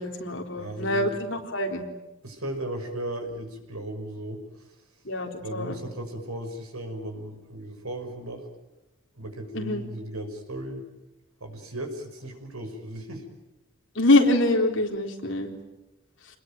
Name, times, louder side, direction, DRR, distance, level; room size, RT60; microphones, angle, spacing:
voice 1, 0.0-1.9 5.1-5.8 9.5-9.8 14.0-15.5, left 2 dB, 55° left, 2 dB, 4.0 m, -24 dB
voice 2, 0.6-1.1 2.2-4.4 5.4-8.5 9.2-10.9 11.4-13.3, right 1 dB, 85° right, 5 dB, 6.1 m, -36 dB
29.0 x 21.0 x 9.1 m, 1.0 s
head